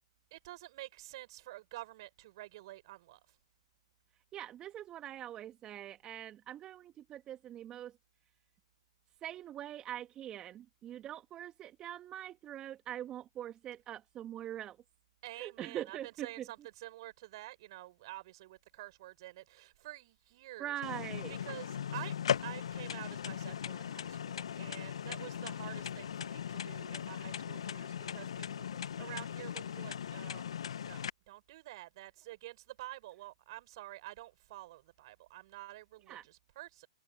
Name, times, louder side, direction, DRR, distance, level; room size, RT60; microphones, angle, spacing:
voice 1, 0.3-3.2 15.2-20.7 21.3-22.1 22.4-30.5 30.8-36.9, right 17 dB, 50° right, 6.9 m, -49 dB
voice 2, 4.3-7.9 9.2-14.8 15.4-16.5 20.6-21.4 36.1-36.2, right 11 dB, 25° right, 1.8 m, -43 dB
sound 1, 20.8-31.1, left 8 dB, 70° left, 1.4 m, -38 dB
hypercardioid pair, 115°, 3 cm